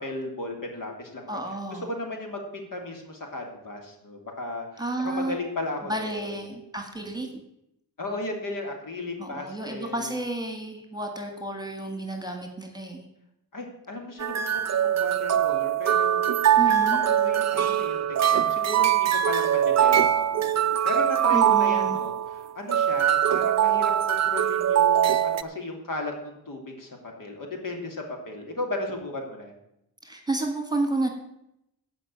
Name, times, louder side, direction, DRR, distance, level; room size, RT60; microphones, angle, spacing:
voice 1, 0.0-1.4 1.7-6.3 8.0-10.2 13.5-16.2 16.5-18.0 18.3-29.5, left 2 dB, 60° left, 2 dB, 2.9 m, -35 dB
voice 2, 1.3-1.9 4.8-5.4 5.8-7.4 9.2-13.1 16.6-17.0 21.3-22.0 30.0-31.1, right 2 dB, 10° right, 4 dB, 1.8 m, -31 dB
sound 1, 14.2-25.4, right 10 dB, 45° right, 0.5 m, -22 dB
15.5 x 5.4 x 8.8 m, 0.83 s
wide cardioid pair, 155°, 37 cm